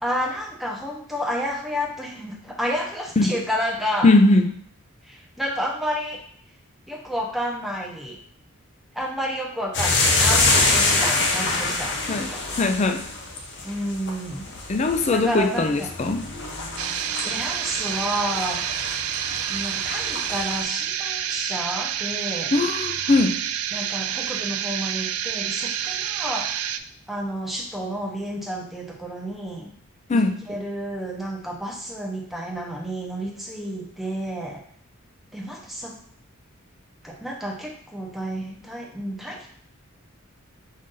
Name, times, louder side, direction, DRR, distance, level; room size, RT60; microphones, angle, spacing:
voice 1, 0.0-4.1 5.1-6.2 6.9-8.2 8.9-12.4 13.6-14.6 15.1-15.9 17.1-18.7 19.5-22.5 23.7-26.7 27.1-29.7 30.1-34.6 35.3-36.0 37.0-39.5, equal, ahead, -2 dB, 0.7 m, -30 dB
voice 2, 4.0-4.5 12.1-12.3 12.6-13.1 14.7-16.3 22.5-23.4 30.1-30.4, left 2 dB, 30° left, 7 dB, 0.4 m, -20 dB
sound 1, 9.7-20.6, left 3 dB, 55° left, 0.8 m, -26 dB
sound 2, 16.8-26.8, right 10 dB, 85° right, 0.3 m, -28 dB
5.4 x 2.6 x 3.8 m, 0.63 s
head